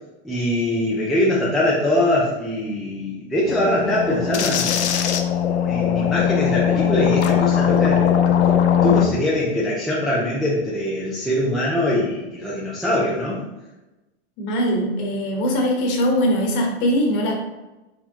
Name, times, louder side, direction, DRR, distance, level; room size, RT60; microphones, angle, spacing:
voice 1, 0.2-4.8 5.6-8.1 8.8-13.4, left 1 dB, ahead, -7 dB, 0.3 m, -22 dB
sound 1, 3.5-9.1, left 9 dB, 85° left, 0.6 m, -19 dB
voice 2, 14.4-17.3, equal, 35° left, 0 dB, 1.2 m, -21 dB
4.5 x 3.5 x 2.8 m, 1.1 s
hypercardioid pair, 140°, 32 cm